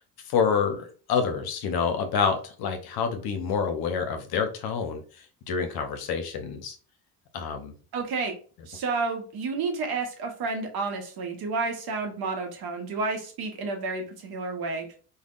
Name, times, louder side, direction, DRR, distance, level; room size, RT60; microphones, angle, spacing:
voice 1, 0.2-6.8 7.3-7.7, left 6 dB, 55° left, 6 dB, 0.7 m, -28 dB
voice 2, 7.9-8.4 8.7-14.9, right 4 dB, 55° right, 4 dB, 0.9 m, -30 dB
3.4 x 2.3 x 2.4 m, 0.40 s
hypercardioid pair, 55°, 45 cm